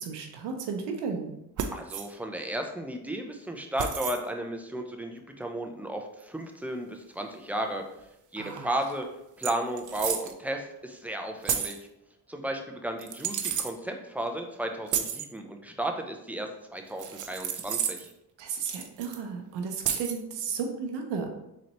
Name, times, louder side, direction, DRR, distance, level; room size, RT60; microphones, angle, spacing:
voice 1, 0.0-1.3 8.4-8.8 18.4-21.3, right 5 dB, 90° right, 4 dB, 0.7 m, -34 dB
sound 1, 1.6-2.1 3.8-4.2 6.2-6.3 8.6-8.7 8.9-9.0 9.4-10.3 11.5-11.8 13.0-13.7 14.9-15.3 17.0-18.1 18.7-19.2 19.8-20.2, right 8 dB, 50° right, 0.5 m, -31 dB
voice 2, 1.7-7.8 8.3-9.1 9.4-11.8 12.3-18.1, right 1 dB, 5° right, 3 dB, 0.5 m, -34 dB
3.9 x 3.3 x 2.9 m, 0.83 s
cardioid pair, 70°, 41 cm